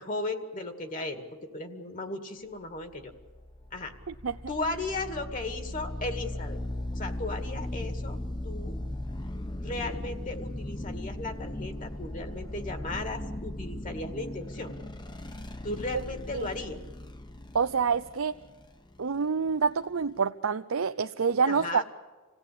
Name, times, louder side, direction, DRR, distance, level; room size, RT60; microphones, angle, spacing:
voice 1, 0.0-3.1 3.7-3.9 4.5-6.6 6.9-8.2 8.4-8.8 9.6-14.7 15.6-16.8 21.5-21.8, left 2 dB, 40° left, 6 dB, 2.1 m, -36 dB
sound 1, 2.8-20.2, left 1 dB, 20° left, 1.2 m, -38 dB
voice 2, 17.5-18.4 19.0-21.8, right 5 dB, 85° right, 9 dB, 0.6 m, -27 dB
27.0 x 17.0 x 8.6 m, 1.4 s
head